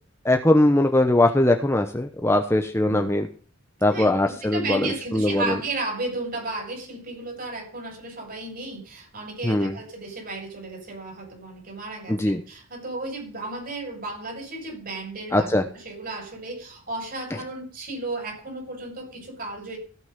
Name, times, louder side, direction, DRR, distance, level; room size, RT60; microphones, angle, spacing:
voice 1, 0.2-3.3 3.8-5.6 9.4-9.8 12.1-12.4 15.3-15.6, left 1 dB, 15° left, 5 dB, 0.9 m, -21 dB
voice 2, 2.8-3.2 3.9-19.8, right 2 dB, 45° right, 1 dB, 5.8 m, -34 dB
17.0 x 6.2 x 5.4 m, 0.40 s
head